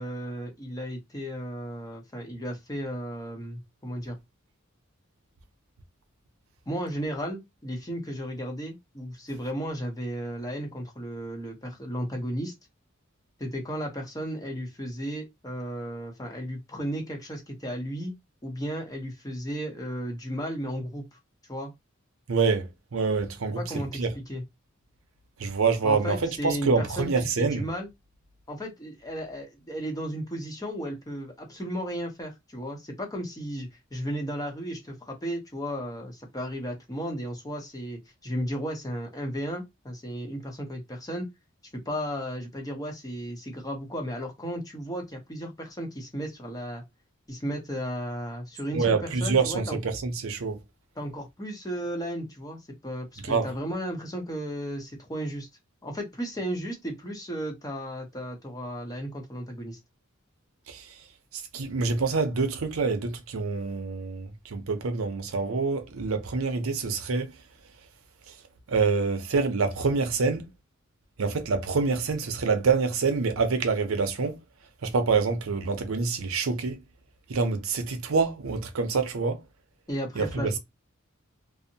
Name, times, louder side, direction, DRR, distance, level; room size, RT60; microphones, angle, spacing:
voice 1, 0.0-4.2 6.7-12.5 13.4-18.2 18.4-21.0 21.5-21.7 23.6-24.4 25.8-27.1 27.4-27.9 28.5-41.3 41.9-46.8 47.3-49.8 51.0-55.5 55.8-59.8 79.9-80.6, equal, 20° left, 0.7 m, -34 dB
voice 2, 22.3-24.1 25.4-27.6 48.7-50.6 53.2-53.5 60.7-60.9 61.3-67.3 68.7-70.5 71.2-74.4 74.8-76.8 77.3-79.4 80.2-80.6, right 4 dB, 80° right, 0.6 m, -26 dB
2.6 x 2.0 x 2.7 m
head